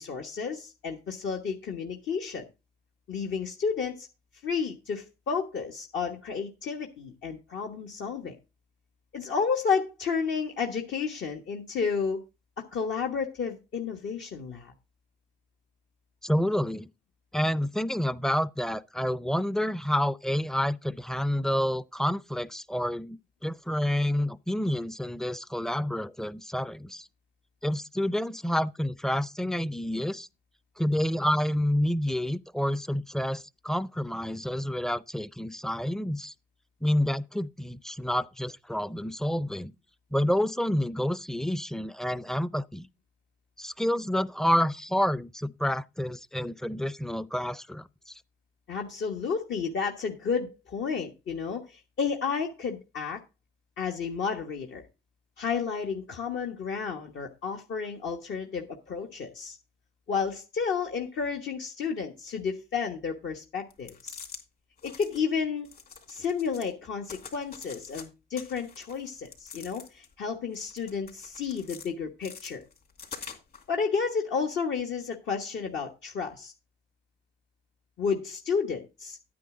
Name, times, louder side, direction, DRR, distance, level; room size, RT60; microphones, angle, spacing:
voice 1, 0.0-2.4 3.1-4.1 4.4-8.3 9.1-12.2 12.6-14.7 48.7-53.2 53.8-54.9 55.4-59.6 60.1-64.2 64.8-65.7 66.1-72.6 73.7-76.5 78.0-79.2, left 5 dB, 65° left, 1.4 m, -31 dB
voice 2, 16.2-16.9 17.3-27.1 27.6-30.3 30.8-36.3 36.8-39.7 40.1-42.9 43.6-48.2, equal, ahead, 0.4 m, -29 dB
sound 1, 63.7-64.4 64.8-65.2 65.6-66.7 67.0-68.0 68.3-70.1 70.5-71.9 72.2-73.6, left 6 dB, 50° left, 3.3 m, -45 dB
9.8 x 9.4 x 3.7 m
cardioid pair, 90°, 20 cm